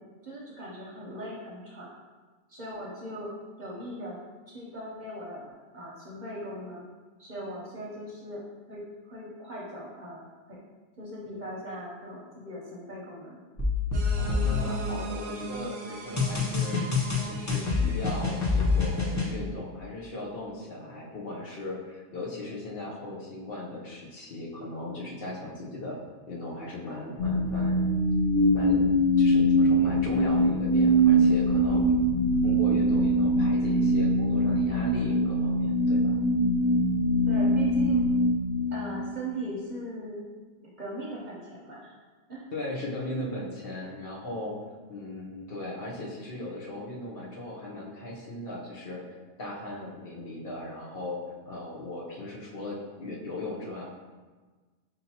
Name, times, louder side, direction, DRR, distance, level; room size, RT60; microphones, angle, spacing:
voice 1, 0.0-1.9 2.5-3.3 3.6-4.2 4.5-5.4 5.7-6.9 7.2-8.4 8.7-10.6 11.0-13.4 17.8-17.9 37.3-38.0 38.7-40.2 40.8-41.9 42.3-42.5 43.1-43.3, right 1 dB, 45° right, -5 dB, 0.8 m, -39 dB
sound 1, 13.6-15.4 16.2-19.3, left 4 dB, 25° left, 0.3 m, -27 dB
sound 2, 13.9-19.3, right 3 dB, 85° right, 1.0 m, -39 dB
voice 2, 14.2-26.0 26.3-27.8 28.5-28.8 29.2-31.8 32.4-36.2 42.5-44.6 44.9-49.0 49.4-53.9, left 2 dB, 55° left, -4 dB, 0.9 m, -38 dB
sound 3, 27.2-39.3, equal, 75° left, 1.1 m, -23 dB
5.4 x 2.7 x 2.8 m, 1.3 s
omnidirectional pair, 1.2 m